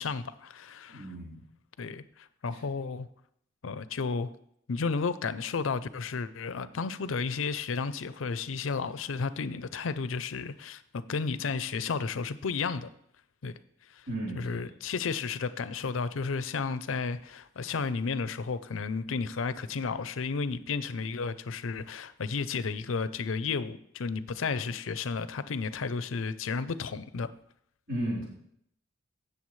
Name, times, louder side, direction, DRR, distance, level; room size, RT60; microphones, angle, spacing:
voice 1, 0.0-1.1 1.8-3.1 3.6-4.3 4.7-12.9 13.4-13.5 13.9-14.0 14.4-27.3, left 4 dB, 90° left, 0.5 m, -32 dB
voice 2, 0.9-1.4 14.1-14.6 27.9-28.3, right 1 dB, 70° right, 4.1 m, -34 dB
15.5 x 6.8 x 3.2 m
head